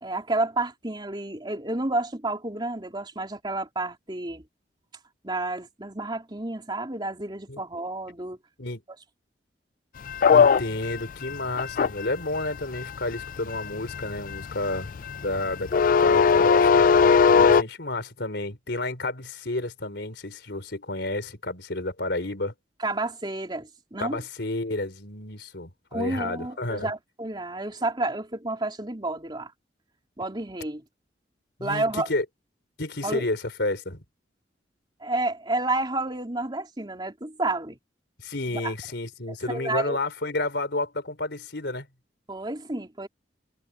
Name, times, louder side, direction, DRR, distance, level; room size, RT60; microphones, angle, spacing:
voice 1, 0.0-4.4 5.2-8.4 17.4-17.5 22.8-24.2 25.9-29.5 30.2-30.8 31.6-32.1 33.0-33.2 35.0-37.8 38.5-38.7 39.5-40.0 42.3-43.1, right 2 dB, 25° right, 3.4 m, -30 dB
sound 1, 10.1-17.6, left 6 dB, 50° left, 0.4 m, -20 dB
voice 2, 10.3-14.9 15.2-16.9 17.4-22.5 24.0-26.9 31.6-32.3 32.8-34.0 38.2-41.9, left 2 dB, 75° left, 3.9 m, -31 dB
head